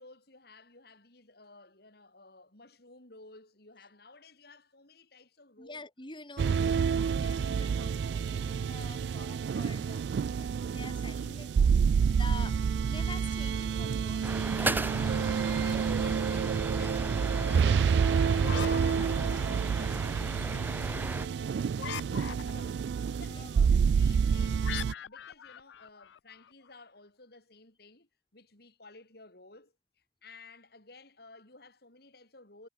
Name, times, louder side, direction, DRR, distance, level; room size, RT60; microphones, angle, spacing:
voice 1, 0.0-5.8 15.5-22.8 23.0-24.7 25.0-32.7, left 3 dB, 60° left, 5.0 m, -55 dB
voice 2, 5.6-10.0 10.3-11.5 12.0-15.4 23.3-23.7, left 3 dB, 25° left, 6.0 m, -47 dB
sound 1, 6.4-24.9, right 6 dB, 70° right, 0.3 m, -28 dB
sound 2, 14.2-21.3, right 2 dB, 10° right, 0.7 m, -36 dB
sound 3, 18.4-19.9 21.7-22.8 24.6-26.5, left 8 dB, 85° left, 0.4 m, -41 dB
head